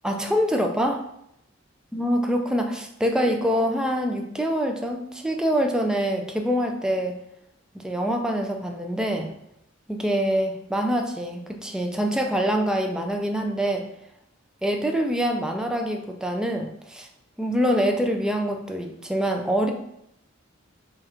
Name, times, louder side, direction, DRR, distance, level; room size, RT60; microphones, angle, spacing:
voice 1, 0.0-1.0 1.9-7.2 7.7-9.3 9.9-13.9 14.6-17.1 17.4-19.7, equal, 5° right, 3 dB, 0.4 m, -25 dB
3.1 x 2.9 x 3.6 m, 0.77 s
head